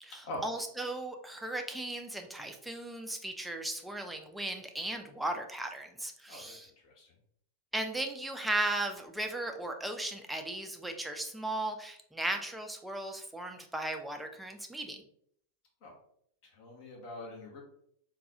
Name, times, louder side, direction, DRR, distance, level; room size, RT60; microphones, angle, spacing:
voice 1, 0.0-6.7 7.7-15.0, right 1 dB, 5° right, 4 dB, 0.5 m, -36 dB
voice 2, 16.5-17.6, left 1 dB, 45° left, 0 dB, 1.0 m, -43 dB
3.8 x 2.3 x 2.7 m, 0.67 s
figure-of-eight pair, 90°, 0 cm